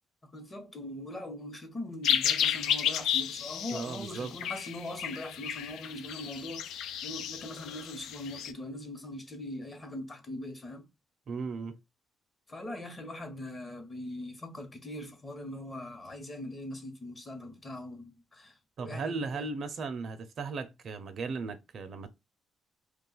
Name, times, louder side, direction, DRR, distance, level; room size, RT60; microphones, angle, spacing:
voice 1, 0.2-10.9 12.5-19.4, left 1 dB, 30° left, 1.0 m, -41 dB
sound 1, 2.0-8.5, left 9 dB, 80° left, 0.3 m, -32 dB
voice 2, 3.7-4.3 11.3-11.8 18.8-22.1, right 4 dB, 60° right, 0.5 m, -36 dB
2.4 x 2.4 x 3.8 m
cardioid pair, 90°, 0 cm